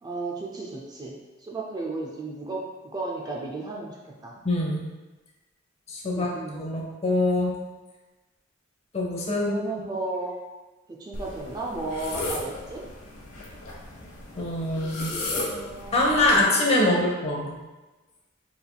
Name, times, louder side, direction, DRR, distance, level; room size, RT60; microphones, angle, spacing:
voice 1, 0.0-4.4 6.1-6.7 9.4-10.4 10.9-12.9 14.8-16.5 16.8-17.2, right 2 dB, 20° right, -2 dB, 0.4 m, -35 dB
voice 2, 4.4-4.8 5.9-7.5 8.9-9.6 14.3-15.1 15.9-17.5, left 1 dB, 35° left, -2 dB, 0.7 m, -24 dB
sound 1, 11.1-16.4, left 2 dB, 85° left, 0.9 m, -35 dB
4.7 x 3.4 x 2.3 m, 1.1 s
head